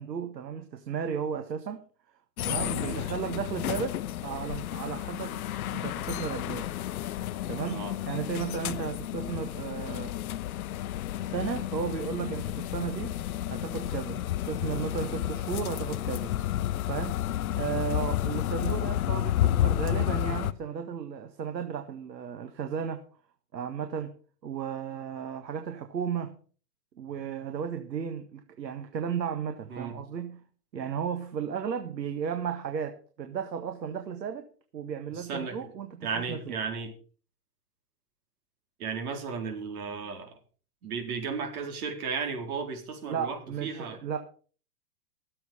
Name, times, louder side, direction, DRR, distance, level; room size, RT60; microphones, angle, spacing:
voice 1, 0.0-1.8 2.4-5.4 5.7-6.7 7.5-10.1 11.2-13.2 13.5-16.3 16.9-17.2 17.6-23.0 23.5-24.1 24.4-26.4 27.0-30.4 30.7-34.5 34.7-36.6 43.1-44.2, right 7 dB, 90° right, 6 dB, 1.7 m, -34 dB
sound 1, 2.4-20.5, left 13 dB, 60° left, 0.8 m, -31 dB
voice 2, 35.1-35.6 36.0-36.9 38.8-40.3 40.8-44.0, right 5 dB, 60° right, 2 dB, 4.5 m, -34 dB
15.0 x 7.7 x 5.5 m, 0.42 s
hypercardioid pair, 150°, 50 cm